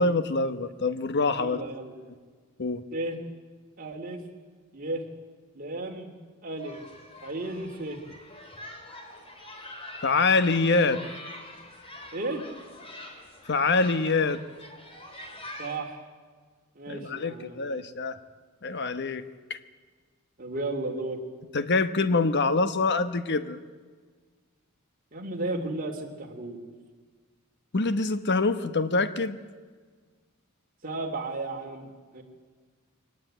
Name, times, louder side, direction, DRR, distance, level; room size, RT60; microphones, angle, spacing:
voice 1, 0.0-1.6 2.6-2.8 10.0-11.0 13.5-14.4 16.9-18.2 18.6-19.2 19.5-19.6 21.5-23.6 27.7-29.4, left 3 dB, 55° left, 12 dB, 1.1 m, -25 dB
voice 2, 1.3-1.9 2.9-3.2 3.8-4.2 4.7-5.1 5.5-6.1 6.4-6.8 7.2-8.0 10.8-11.0 12.1-12.4 15.6-16.0 16.7-17.6 20.4-21.2 25.1-26.6 30.8-32.2, right 2 dB, 40° right, 3 dB, 3.1 m, -34 dB
sound 1, 6.6-15.8, left 1 dB, 25° left, 3.6 m, -45 dB
23.5 x 19.0 x 9.1 m, 1.5 s
head